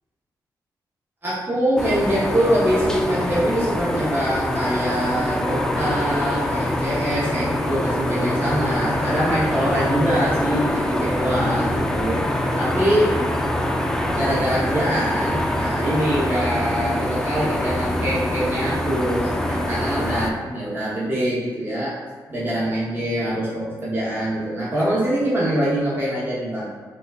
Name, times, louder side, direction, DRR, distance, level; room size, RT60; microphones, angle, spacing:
voice 1, 1.2-12.2 12.6-13.1 14.2-21.9 22.3-26.6, right 1 dB, 25° right, -8 dB, 0.9 m, -24 dB
sound 1, 1.8-20.3, left 1 dB, 10° left, 0.3 m, -24 dB
4.1 x 2.3 x 2.5 m, 1.5 s
cardioid pair, 85°, 8 cm